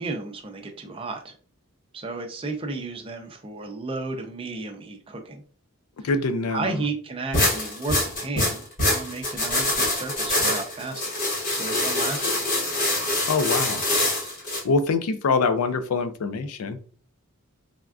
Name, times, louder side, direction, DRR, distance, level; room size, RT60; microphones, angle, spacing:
voice 1, 0.0-1.3 1.9-5.4 6.0-6.1 6.5-11.0 11.5-12.4, right 3 dB, 25° right, 2 dB, 0.5 m, -33 dB
voice 2, 6.0-6.7 13.3-13.8 14.6-16.8, left 4 dB, 80° left, 10 dB, 0.4 m, -24 dB
sound 1, 7.3-14.6, left 1 dB, 40° left, 1.0 m, -25 dB
3.5 x 2.3 x 2.3 m, 0.41 s
head